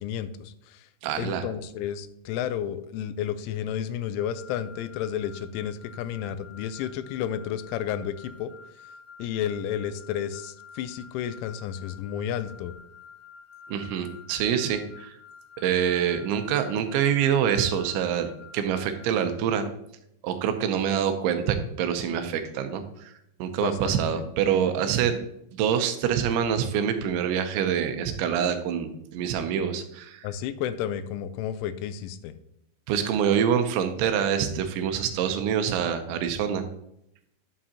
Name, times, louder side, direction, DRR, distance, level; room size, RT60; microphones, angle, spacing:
voice 1, 0.0-0.9 1.2-8.5 9.2-12.7 23.6-24.0 30.2-32.3, left 9 dB, 90° left, 12 dB, 3.1 m, -32 dB
voice 2, 1.0-1.4 13.7-15.1 15.6-19.7 20.2-23.1 23.4-25.2 25.6-30.3 32.9-36.6, right 8 dB, 80° right, 7 dB, 3.0 m, -26 dB
sound 1, 4.2-19.1, left 6 dB, 70° left, 2.9 m, -49 dB
11.5 x 7.4 x 2.9 m, 0.76 s
omnidirectional pair, 5.5 m